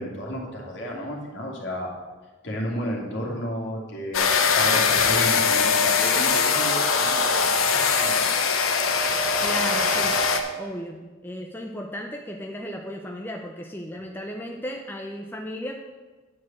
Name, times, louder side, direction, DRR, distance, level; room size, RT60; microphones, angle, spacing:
voice 1, 0.0-1.9 2.4-4.3 4.5-8.3, equal, 60° left, -2 dB, 2.3 m, -32 dB
sound 1, 4.1-10.4, left 5 dB, 90° left, 1.0 m, -21 dB
voice 2, 9.4-10.2 10.6-15.9, equal, 10° left, 1 dB, 0.5 m, -35 dB
9.6 x 4.8 x 7.3 m, 1.3 s
head